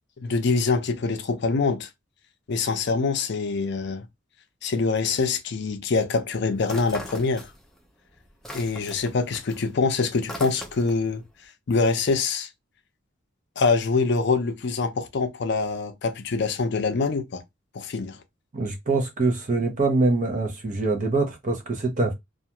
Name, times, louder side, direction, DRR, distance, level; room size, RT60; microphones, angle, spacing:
voice 1, 0.2-1.9 2.5-4.1 4.6-7.5 8.5-11.2 11.7-12.5 13.6-17.4 17.7-18.2, left 4 dB, 60° left, 0.5 m, -24 dB
sound 1, 6.6-7.9 8.2-11.1, equal, ahead, 0.5 m, -40 dB
voice 2, 18.5-22.1, right 3 dB, 40° right, 0.7 m, -24 dB
2.4 x 2.3 x 2.9 m
head